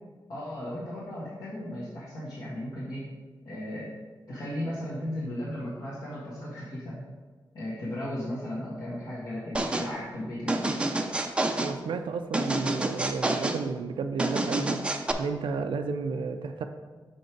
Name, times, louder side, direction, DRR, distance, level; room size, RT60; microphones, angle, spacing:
voice 1, 0.3-3.0 3.4-3.9 4.3-7.0 7.5-10.6, left 1 dB, 60° left, -8 dB, 1.6 m, -35 dB
sound 1, 9.5-9.9 10.5-11.7 12.3-13.6 14.2-15.1, right 2 dB, 15° right, 0.4 m, -28 dB
voice 2, 11.6-14.8 15.2-16.6, right 5 dB, 90° right, 6 dB, 0.4 m, -32 dB
6.4 x 5.2 x 4.5 m, 1.4 s
wide cardioid pair, 175°, 8 cm